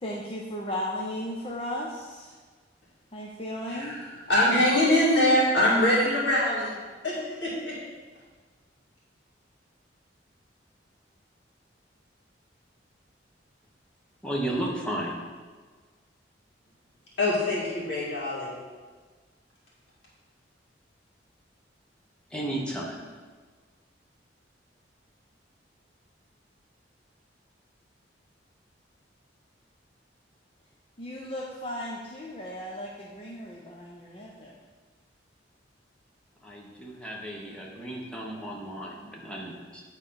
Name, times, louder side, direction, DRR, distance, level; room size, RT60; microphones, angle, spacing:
voice 1, 0.0-2.4 3.1-4.0 31.0-34.6, left 1 dB, 30° left, -3 dB, 0.7 m, -35 dB
voice 2, 3.7-6.7 7.0-7.8 17.2-18.5, left 1 dB, 70° left, -7 dB, 2.6 m, -24 dB
voice 3, 14.2-15.2 22.3-23.0 36.4-39.8, right 1 dB, 5° left, -4 dB, 1.2 m, -34 dB
9.1 x 4.0 x 5.7 m, 1.5 s
head